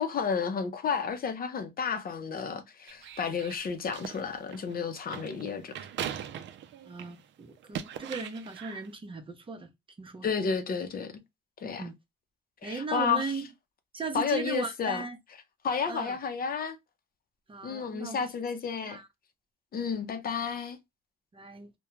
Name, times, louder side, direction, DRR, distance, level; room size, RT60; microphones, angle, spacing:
voice 1, 0.0-5.8 10.2-11.2 11.6-11.9 12.6-13.3 14.1-15.0 15.6-16.8 17.6-19.0 19.7-20.8, left 6 dB, 45° left, 0.6 m, -31 dB
sound 1, 2.9-7.2 7.6-8.9, right 9 dB, 65° right, 0.4 m, -40 dB
voice 2, 6.9-9.7 10.0-10.3 11.8-11.9 12.6-13.5 13.9-15.2 15.9-16.2 17.5-18.3 18.7-19.1 21.3-21.7, right 4 dB, 25° right, 0.7 m, -37 dB
2.3 x 2.2 x 2.9 m
cardioid pair, 90°, 20 cm